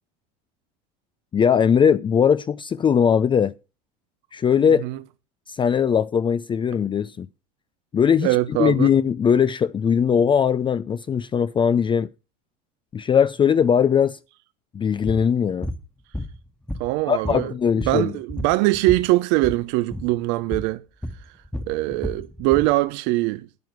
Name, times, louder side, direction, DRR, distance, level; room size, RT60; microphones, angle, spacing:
voice 1, 1.3-3.5 4.3-4.8 5.5-7.3 7.9-12.1 12.9-14.2 14.7-15.7 17.1-18.1, left 7 dB, 25° left, 0.5 m, -20 dB
voice 2, 8.2-8.9 16.8-17.5 17.9-20.8 21.7-23.5, right 19 dB, 65° right, 0.7 m, -22 dB
sound 1, 15.1-15.2 15.6-15.8 16.1-17.0 17.2-19.1 19.4-19.6 19.9-20.1 20.5-20.7 21.0-22.7, left 1 dB, 5° left, 1.4 m, -31 dB
9.5 x 9.3 x 6.0 m
supercardioid pair, 100°, 20 cm